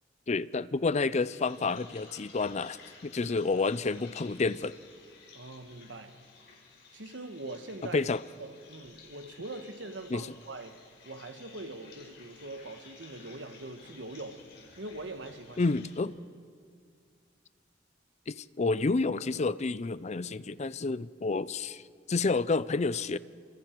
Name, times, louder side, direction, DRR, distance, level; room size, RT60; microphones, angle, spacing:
voice 1, 0.3-2.8 3.0-4.7 7.9-8.2 10.1-10.2 15.6-16.1 18.3-21.8 22.1-23.2, left 3 dB, 40° left, 0.5 m, -29 dB
sound 1, 1.2-16.0, left 4 dB, 65° left, 5.0 m, -54 dB
voice 2, 5.3-6.2 6.9-8.0 8.4-14.4 14.8-15.8, right 2 dB, 85° right, 1.4 m, -42 dB
29.5 x 26.5 x 4.6 m
head